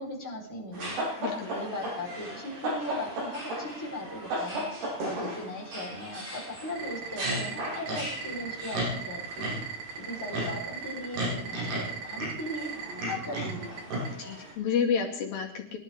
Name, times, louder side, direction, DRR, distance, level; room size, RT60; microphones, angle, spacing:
voice 1, 0.0-1.0 1.5-4.6 5.0-9.5 9.9-11.7 12.0-12.7 13.1-13.8, left 1 dB, 5° left, -4 dB, 3.8 m, -38 dB
sound 1, 0.7-14.5, right 1 dB, 90° right, 7.5 m, -35 dB
voice 2, 1.2-1.5 14.2-15.8, left 6 dB, 65° left, -1 dB, 4.0 m, -30 dB
sound 2, 6.8-14.1, right 8 dB, 75° right, 3.7 m, -38 dB
23.5 x 11.5 x 3.7 m, 0.65 s
omnidirectional pair, 4.6 m